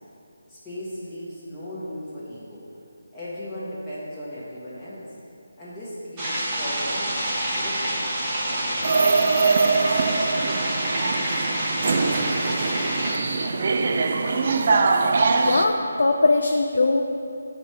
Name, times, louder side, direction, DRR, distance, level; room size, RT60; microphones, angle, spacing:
voice 1, 0.5-2.7 3.1-5.1 5.6-9.2 9.5-10.5 10.9-14.6, equal, 5° left, -13 dB, 1.5 m, -38 dB
sound 1, 6.2-13.1, right 1 dB, 20° right, 1.2 m, -27 dB
sound 2, 8.8-15.7, right 4 dB, 45° right, 0.3 m, -22 dB
voice 2, 15.4-17.0, left 3 dB, 70° left, 3 dB, 0.4 m, -20 dB
8.5 x 3.0 x 4.7 m, 2.6 s
figure-of-eight pair, 165°, 0 cm